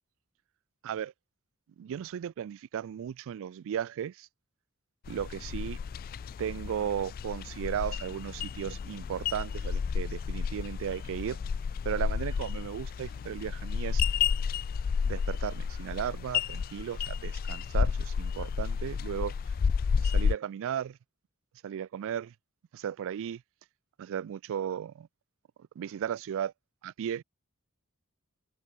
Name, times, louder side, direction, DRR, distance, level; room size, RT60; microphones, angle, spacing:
voice 1, 1.8-4.3 5.1-5.8 6.4-11.4 11.9-14.0 15.0-19.3 20.0-21.0 21.6-22.3 22.7-23.4 24.0-25.1 25.8-26.5 26.8-27.2, right 9 dB, 60° right, 0.3 m, -35 dB
sound 1, 5.1-20.4, left 6 dB, 40° left, 0.3 m, -31 dB
head